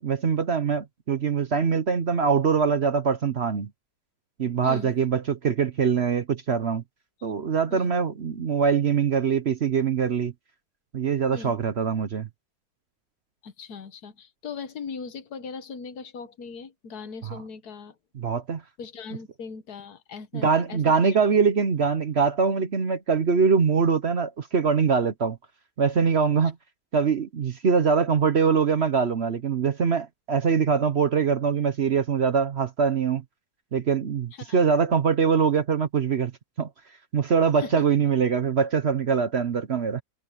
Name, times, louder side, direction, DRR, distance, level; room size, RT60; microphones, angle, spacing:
voice 1, 0.0-3.7 4.4-6.8 7.2-10.3 10.9-12.3 17.2-17.4 18.1-18.6 20.3-25.4 25.8-26.6 26.9-33.2 33.7-36.3 36.6-36.7 37.1-40.0, right 6 dB, 50° right, 1.0 m, -23 dB
voice 2, 13.4-18.0 18.8-21.2 34.3-34.6 37.5-37.8, left 5 dB, 70° left, 1.7 m, -39 dB
omnidirectional pair, 1.7 m